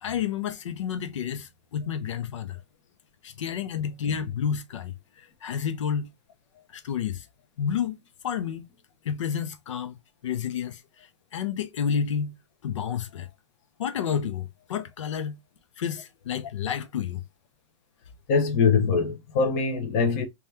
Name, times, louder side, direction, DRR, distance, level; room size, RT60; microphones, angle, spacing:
voice 1, 0.0-2.6 3.2-4.9 5.4-6.1 6.7-7.2 7.6-7.9 8.2-8.7 9.0-9.9 10.2-10.8 11.3-12.3 12.6-13.3 13.8-15.4 15.8-17.2, left 8 dB, 80° left, 0.6 m, -30 dB
voice 2, 18.3-20.2, left 5 dB, 30° left, 0.6 m, -23 dB
2.8 x 2.3 x 3.3 m
supercardioid pair, 175°, 15 cm